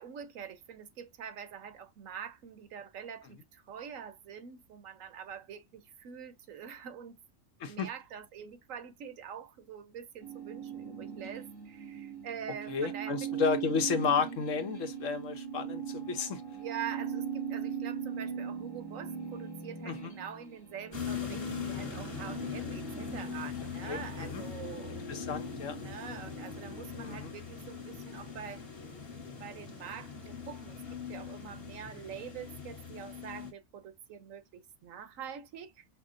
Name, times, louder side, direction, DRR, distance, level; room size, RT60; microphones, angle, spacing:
voice 1, 0.0-7.2 7.6-13.4 16.5-25.1 25.8-28.6 29.4-35.8, right 8 dB, 80° right, 1.2 m, -45 dB
sound 1, 10.2-27.5, right 7 dB, 20° left, 1.1 m, -40 dB
voice 2, 12.7-16.4 19.9-20.1 23.8-24.4 25.1-25.8 27.0-27.3, left 6 dB, 75° left, 1.3 m, -32 dB
sound 2, 20.9-33.5, left 6 dB, 50° left, 1.6 m, -41 dB
5.8 x 2.1 x 3.7 m
omnidirectional pair, 1.4 m